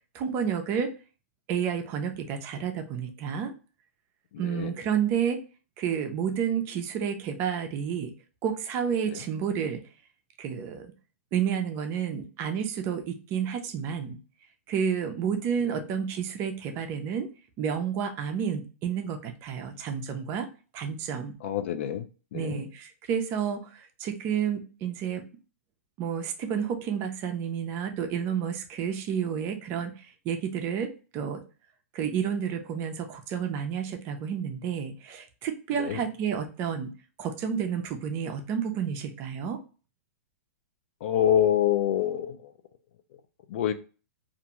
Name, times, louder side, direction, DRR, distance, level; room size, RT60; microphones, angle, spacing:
voice 1, 0.1-0.9 1.5-3.5 4.4-5.4 5.8-8.1 8.4-9.8 10.4-10.9 11.3-14.2 14.7-17.3 17.6-20.5 20.7-21.4 22.3-25.2 26.0-31.4 31.9-36.9 37.2-39.6, right 7 dB, 30° right, 5 dB, 0.5 m, -30 dB
voice 2, 4.3-4.7 9.1-9.2 21.4-22.1 22.3-22.6 35.7-36.0 41.0-42.5 43.5-43.7, left 10 dB, 55° left, 8 dB, 0.4 m, -26 dB
2.5 x 2.2 x 2.9 m, 0.35 s
hypercardioid pair, 140°, 8 cm